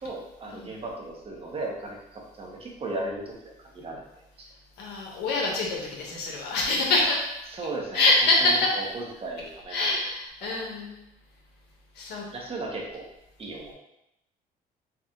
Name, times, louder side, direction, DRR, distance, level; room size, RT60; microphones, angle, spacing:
voice 1, 0.0-4.0 7.5-8.1 8.4-9.9 10.4-10.6 12.3-13.1 13.4-13.7, right 2 dB, 35° right, -1 dB, 0.9 m, -36 dB
voice 2, 4.8-7.3 7.9-8.8 9.7-11.0 12.0-12.2, left 2 dB, 80° left, -2 dB, 1.2 m, -25 dB
4.3 x 2.4 x 3.7 m, 0.84 s
cardioid pair, 110°, 17 cm